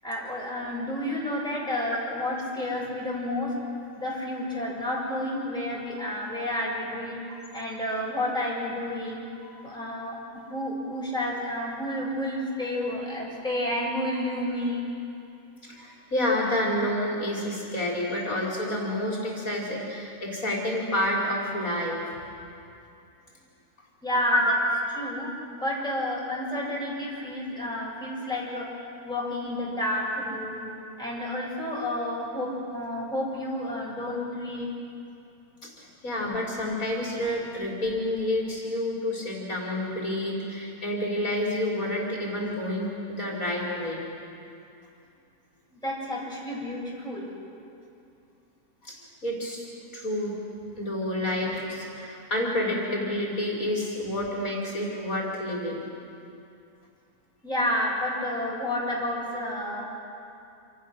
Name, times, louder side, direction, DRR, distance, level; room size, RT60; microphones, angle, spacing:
voice 1, 0.0-3.5 4.0-7.2 7.5-9.2 9.6-14.8 24.0-24.4 24.9-25.3 25.6-28.7 29.0-30.7 31.0-34.7 45.7-47.3 57.4-59.8, left 1 dB, 5° left, -5 dB, 7.1 m, -30 dB
voice 2, 15.6-22.0 24.3-24.5 35.6-44.0 48.8-49.0 49.2-49.7 49.9-50.3 50.8-55.9, left 1 dB, 55° left, -3 dB, 3.9 m, -29 dB
27.0 x 27.0 x 6.5 m, 2.6 s
omnidirectional pair, 1.7 m